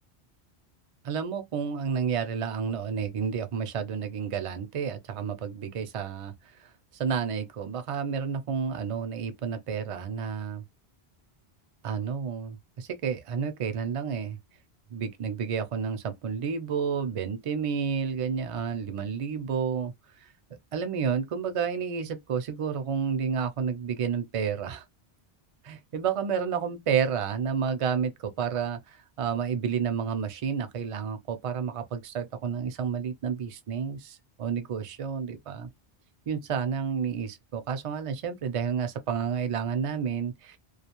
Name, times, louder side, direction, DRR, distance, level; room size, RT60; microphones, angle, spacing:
voice 1, 1.0-6.3 6.6-10.6 11.8-14.4 14.9-19.9 20.2-20.3 20.7-24.8 25.6-35.7 36.3-40.6, right 6 dB, 50° right, 0.4 m, -30 dB
2.4 x 2.3 x 2.9 m
omnidirectional pair, 1.1 m